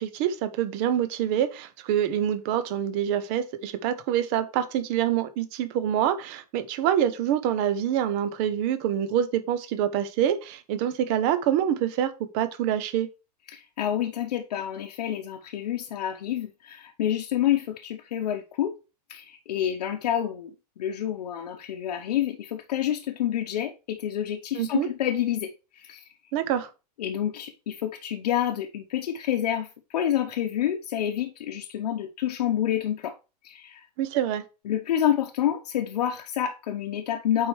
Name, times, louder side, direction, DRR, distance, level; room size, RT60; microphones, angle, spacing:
voice 1, 0.0-13.1 24.5-24.9 26.3-26.7 34.0-34.4, right 10 dB, 20° right, 0.3 m, -26 dB
voice 2, 13.5-18.8 19.1-20.5 20.8-26.0 27.0-29.7 29.9-33.1 33.4-33.8 34.7-37.5, left 11 dB, 80° left, 0.8 m, -28 dB
8.3 x 4.6 x 3.1 m
supercardioid pair, 180°, 20 cm